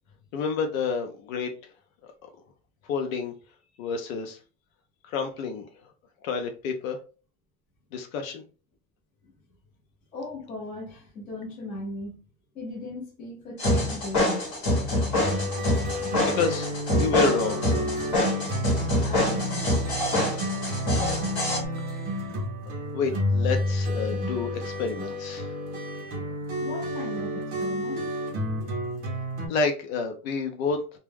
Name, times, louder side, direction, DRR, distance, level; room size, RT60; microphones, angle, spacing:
voice 1, 0.3-1.5 2.8-3.3 3.8-4.4 5.1-5.7 6.2-7.0 7.9-8.4 16.2-17.6 22.9-25.5 29.5-30.8, left 5 dB, 75° left, 0.7 m, -29 dB
voice 2, 10.1-12.2 12.5-14.5 19.0-19.7 26.6-28.2, left 2 dB, 20° left, 0.7 m, -37 dB
sound 1, 13.6-21.6, left 1 dB, 35° left, 1.1 m, -26 dB
sound 2, 15.2-29.5, equal, 20° right, 0.6 m, -30 dB
2.2 x 2.2 x 3.3 m
supercardioid pair, 170°, 41 cm